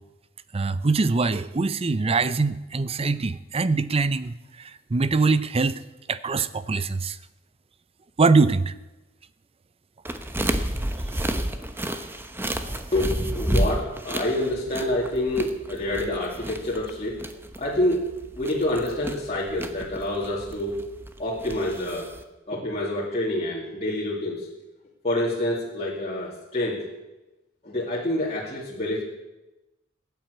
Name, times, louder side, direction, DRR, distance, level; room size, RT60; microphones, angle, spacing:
voice 1, 0.5-4.3 4.9-5.8 6.1-7.2 8.2-8.7, right 4 dB, 30° right, 15 dB, 0.5 m, -23 dB
sound 1, 10.0-22.2, right 1 dB, 10° right, 0.9 m, -31 dB
voice 2, 12.9-17.2 17.6-18.0 18.4-20.8 21.2-22.1 22.5-24.5 25.0-26.8 27.6-29.0, left 1 dB, 35° left, -6 dB, 2.6 m, -27 dB
16.0 x 9.3 x 8.0 m, 1.0 s
head